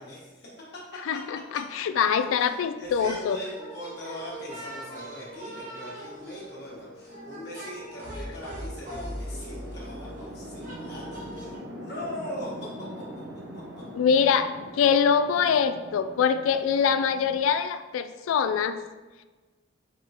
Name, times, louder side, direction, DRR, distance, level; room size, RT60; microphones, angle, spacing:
voice 1, 0.0-1.2 1.5-1.6 1.9-2.0 2.4-11.5 11.8-13.0 13.5-13.8, equal, 55° left, -5 dB, 1.4 m, -41 dB
voice 2, 1.1-3.4 13.9-18.8, left 7 dB, 85° left, 11 dB, 0.3 m, -24 dB
sound 1, 2.8-3.3 3.5-11.6, equal, 40° right, 1.0 m, -41 dB
Chatter / Traffic noise roadway noise / Train, 3.9-17.4, equal, 65° right, 0.8 m, -44 dB
5.1 x 3.6 x 2.8 m, 1.2 s
head